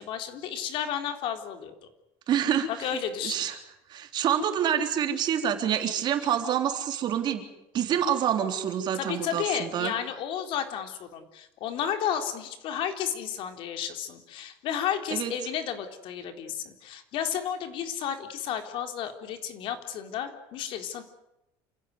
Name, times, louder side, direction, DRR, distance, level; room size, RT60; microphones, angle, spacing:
voice 1, 0.0-1.7 2.7-3.5 8.9-21.0, left 9 dB, 60° left, 6 dB, 3.8 m, -32 dB
voice 2, 2.3-3.6 3.9-7.4 7.7-9.9 15.1-15.3, right 9 dB, 45° right, 5 dB, 3.6 m, -27 dB
28.5 x 16.5 x 9.6 m, 0.88 s
cardioid pair, 135°, 10 cm